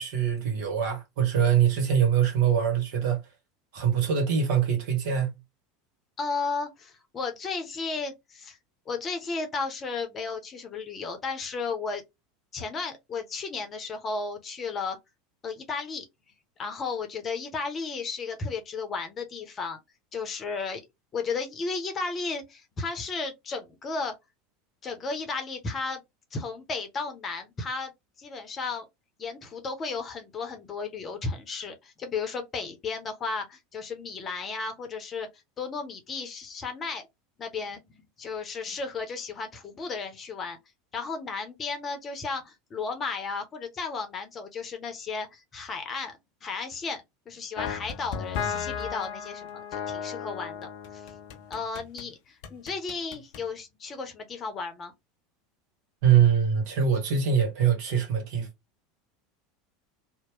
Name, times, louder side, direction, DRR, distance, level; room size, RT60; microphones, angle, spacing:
voice 1, 0.0-3.2 3.7-5.3 56.0-58.5, right 8 dB, 55° right, 1.2 m, -23 dB
voice 2, 6.2-8.6 8.9-12.0 12.5-15.0 15.4-16.1 16.6-19.8 20.1-20.8 21.1-24.1 24.8-26.0 26.3-27.9 28.2-28.8 29.2-35.3 35.6-37.1 37.4-40.6 40.9-50.6 50.9-51.1 51.5-54.9, left 4 dB, 30° left, 0.8 m, -34 dB
sound 1, 47.6-52.1 52.4-53.5, left 7 dB, 55° left, 0.5 m, -35 dB
2.9 x 2.1 x 3.0 m
figure-of-eight pair, 75°, 0 cm